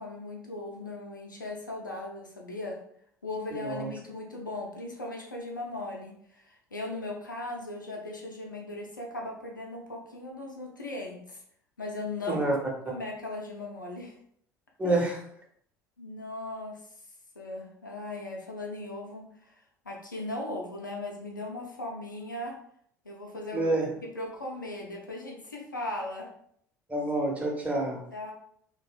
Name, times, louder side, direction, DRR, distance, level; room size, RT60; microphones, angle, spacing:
voice 1, 0.0-2.8 3.2-11.4 11.8-12.4 12.8-14.1 14.8-15.0 16.0-16.8 17.4-19.5 19.9-22.5 23.0-23.7 24.0-26.3 28.1-28.3, left 2 dB, 85° left, 0 dB, 0.4 m, -38 dB
voice 2, 14.8-15.2 23.5-23.9 26.9-28.0, right 2 dB, 15° right, -1 dB, 0.8 m, -27 dB
3.0 x 2.0 x 2.4 m, 0.67 s
figure-of-eight pair, 60°, 10 cm